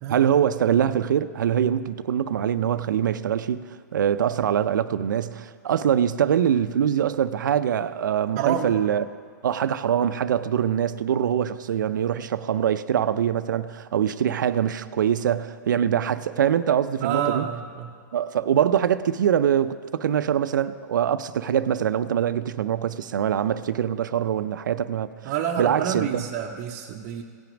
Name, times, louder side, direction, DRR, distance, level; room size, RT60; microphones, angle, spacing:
voice 1, 0.1-9.0 9.4-17.5 18.1-25.3 25.6-26.2, right 9 dB, 80° right, 0.5 m, -23 dB
voice 2, 8.4-8.7 17.0-17.9 25.2-27.2, right 9 dB, 35° right, 0.6 m, -28 dB
17.0 x 5.9 x 5.1 m
hypercardioid pair, 145°, 10 cm